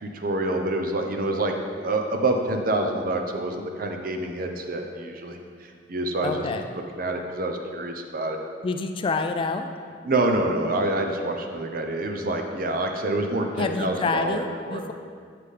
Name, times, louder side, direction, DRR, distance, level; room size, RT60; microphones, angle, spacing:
voice 1, 0.0-6.4 6.9-8.4 10.0-14.8, right 2 dB, 50° right, 4 dB, 0.7 m, -27 dB
voice 2, 6.2-6.6 8.6-9.7 13.6-14.9, left 4 dB, 30° left, 6 dB, 0.3 m, -27 dB
7.5 x 6.8 x 3.3 m, 2.1 s
head